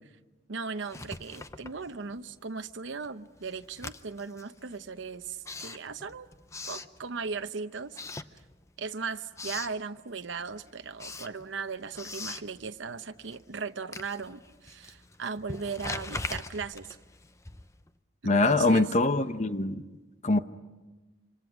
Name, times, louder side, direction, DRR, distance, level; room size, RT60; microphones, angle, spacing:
voice 1, 0.5-6.3 6.7-8.0 8.8-17.0 18.2-18.9, right 5 dB, 85° right, 9 dB, 0.8 m, -37 dB
Writing, 0.8-2.4 2.7-7.5 7.9-8.9 9.1-9.8 10.2-17.9, left 3 dB, 15° left, 0.7 m, -42 dB
voice 2, 18.2-19.8 20.2-20.4, left 2 dB, 40° left, 10 dB, 0.9 m, -23 dB
26.5 x 26.0 x 6.1 m, 1.2 s
head